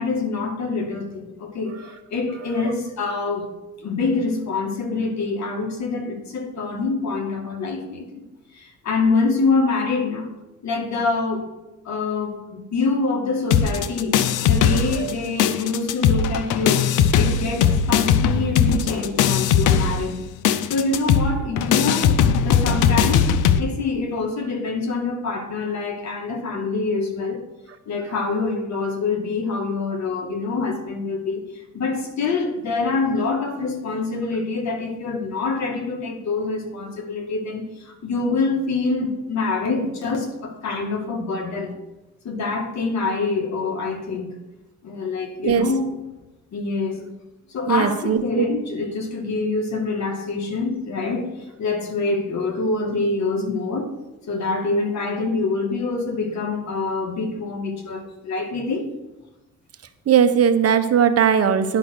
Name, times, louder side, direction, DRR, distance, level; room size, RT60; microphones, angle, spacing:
voice 1, 0.0-1.8 2.1-3.5 3.8-8.3 8.5-10.3 10.6-11.5 11.8-16.9 17.2-20.2 20.7-23.3 23.6-27.4 27.9-31.4 31.7-41.7 42.2-44.4 44.8-45.9 46.5-47.0 47.5-51.3 51.6-53.9 54.3-58.9, left 3 dB, 65° left, 3 dB, 2.3 m, -25 dB
sound 1, 13.5-15.1 15.4-23.6, left 8 dB, 85° left, 0.7 m, -19 dB
voice 2, 47.7-48.5 60.1-61.8, right 7 dB, 55° right, 9 dB, 1.0 m, -18 dB
10.5 x 5.9 x 6.6 m, 1.0 s
cardioid pair, 90°, 30 cm